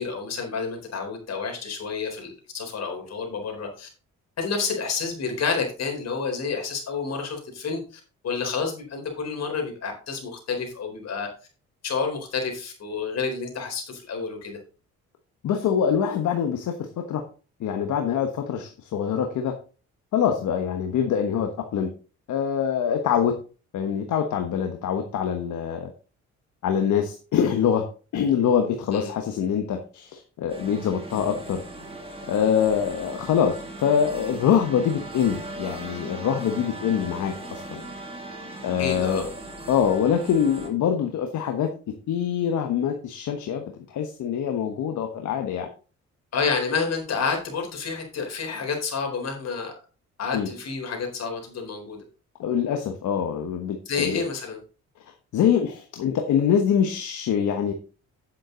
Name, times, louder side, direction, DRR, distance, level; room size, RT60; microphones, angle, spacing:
voice 1, 0.0-3.9 4.4-11.3 11.8-14.6 28.9-29.1 38.8-39.3 46.3-49.7 50.2-52.0 53.9-54.6, left 5 dB, 60° left, 2 dB, 4.3 m, -29 dB
voice 2, 15.4-16.7 17.1-17.2 17.6-19.5 20.1-21.9 22.3-23.3 23.7-25.9 26.6-27.8 28.1-31.6 32.2-37.8 38.6-39.3 39.7-45.7 50.3-50.5 52.4-54.2 55.3-57.7, left 8 dB, 75° left, 5 dB, 1.3 m, -24 dB
sound 1, 30.5-40.7, right 1 dB, 20° right, 2.8 m, -38 dB
9.5 x 7.6 x 3.9 m, 0.36 s
cardioid pair, 90°, 30 cm